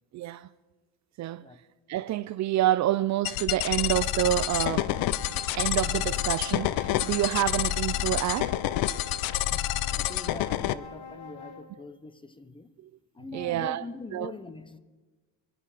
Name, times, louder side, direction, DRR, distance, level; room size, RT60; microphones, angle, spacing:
voice 1, 0.1-0.5 1.2-1.4 1.9-4.9 5.6-8.6 13.3-13.8 14.1-14.3, right 13 dB, 50° right, 0.5 m, -28 dB
sound 1, 3.3-10.7, left 14 dB, 70° left, 0.7 m, -28 dB
sound 2, 4.3-11.7, left 4 dB, 55° left, 3.0 m, -44 dB
voice 2, 9.3-12.7 13.1-14.8, left 3 dB, 15° left, 0.8 m, -43 dB
24.5 x 10.0 x 5.0 m
cardioid pair, 125°, 36 cm